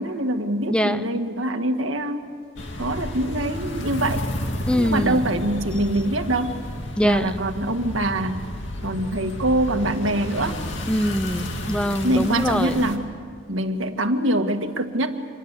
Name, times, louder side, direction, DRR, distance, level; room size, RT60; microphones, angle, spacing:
voice 1, 0.0-2.3 2.8-4.2 4.7-6.6 7.0-8.4 8.8-10.6 12.0-13.2 13.5-15.2, right 1 dB, 80° right, 6 dB, 1.7 m, -24 dB
voice 2, 0.7-1.0 4.7-5.3 7.0-7.4 10.9-12.9, equal, 5° left, 11 dB, 0.6 m, -23 dB
sound 1, 2.6-13.0, left 1 dB, 65° left, 2.3 m, -32 dB
27.0 x 22.0 x 8.2 m, 2.1 s
head